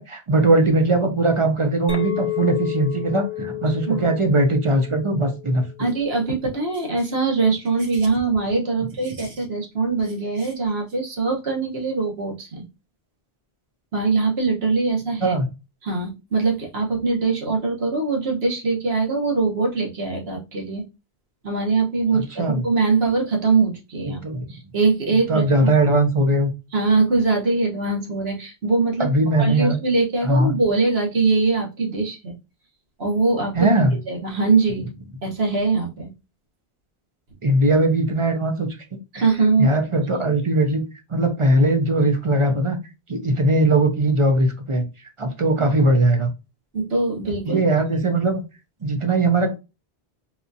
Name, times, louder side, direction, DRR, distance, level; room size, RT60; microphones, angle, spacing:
voice 1, 0.0-5.9 15.2-15.5 22.1-22.6 24.1-24.4 25.3-26.5 29.0-29.8 30.2-30.5 33.6-34.0 37.4-38.7 39.2-39.3 39.6-40.8 41.1-42.8 43.1-44.8 45.2-46.3 47.4-48.4 48.8-49.5, right 2 dB, 35° right, 5 dB, 0.6 m, -20 dB
Chink clink, 1.9-6.4, left 13 dB, 40° left, 0.6 m, -32 dB
voice 2, 5.8-12.6 13.9-15.3 15.8-20.8 21.4-24.2 24.5-25.8 26.7-29.1 29.4-32.3 33.0-33.7 34.1-34.9 35.2-36.1 39.1-39.7 46.7-47.6, right 4 dB, 75° right, 0 dB, 1.3 m, -22 dB
4.3 x 2.4 x 2.6 m, 0.27 s
omnidirectional pair, 1.1 m